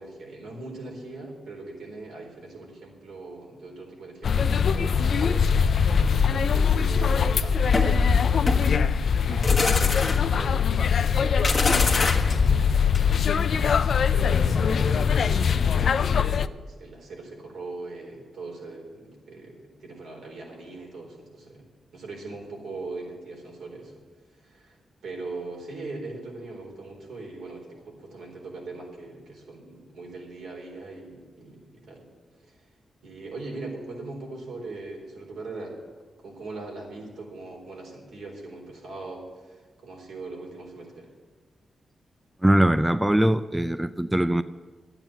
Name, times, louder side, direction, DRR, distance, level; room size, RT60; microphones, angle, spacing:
voice 1, 0.0-6.0 6.5-13.2 14.1-21.7 21.9-23.9 24.4-24.8 25.0-32.1 32.4-32.6 33.0-35.8 36.2-41.1, right 3 dB, 90° right, -1 dB, 4.2 m, -40 dB
sound 1, 4.2-16.5, left 7 dB, 60° left, 0.4 m, -22 dB
sound 2, 7.7-13.4, left 3 dB, 35° left, 1.3 m, -25 dB
voice 2, 42.4-44.4, right 1 dB, 5° right, 12 dB, 0.4 m, -21 dB
12.0 x 8.9 x 9.1 m, 1.4 s
wide cardioid pair, 120°, 0 cm